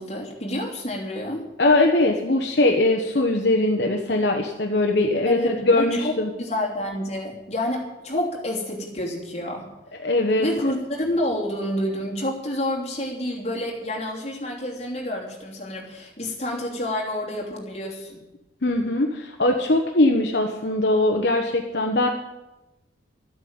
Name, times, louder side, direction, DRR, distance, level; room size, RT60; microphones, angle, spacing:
voice 1, 0.0-1.4 5.2-9.7 10.4-18.2, left 1 dB, 35° left, -2 dB, 3.0 m, -28 dB
voice 2, 1.6-6.3 10.0-10.5 18.6-22.1, left 2 dB, 60° left, 2 dB, 1.1 m, -21 dB
12.5 x 8.8 x 8.8 m, 1.0 s
head